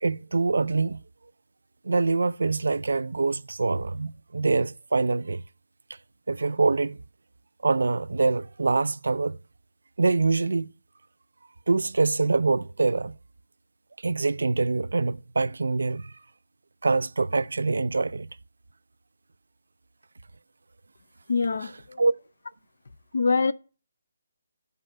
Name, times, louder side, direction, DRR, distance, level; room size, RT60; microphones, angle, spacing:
voice 1, 0.0-1.0 1.8-5.4 6.3-7.0 7.6-9.4 10.0-10.7 11.7-13.2 14.0-16.1 16.8-18.3 22.0-22.1, right 3 dB, 90° right, 0.4 m, -24 dB
voice 2, 21.3-22.0 23.1-23.5, left 4 dB, 65° left, 0.6 m, -24 dB
11.0 x 5.4 x 5.3 m
hypercardioid pair, 170°, 0 cm